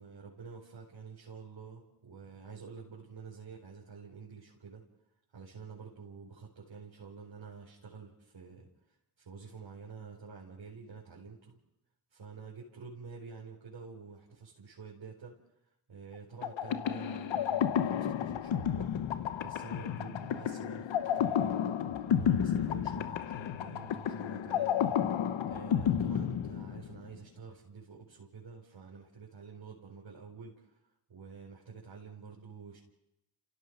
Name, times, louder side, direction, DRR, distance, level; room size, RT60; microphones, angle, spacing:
voice 1, 0.0-4.8 5.3-11.6 12.1-15.3 15.9-18.9 19.4-30.8 31.1-32.8, right 5 dB, 75° right, -4 dB, 4.9 m, -49 dB
sound 1, 16.4-27.1, left 9 dB, 90° left, 1.0 m, -31 dB
30.0 x 16.5 x 5.5 m, 0.84 s
supercardioid pair, 40°, 45 cm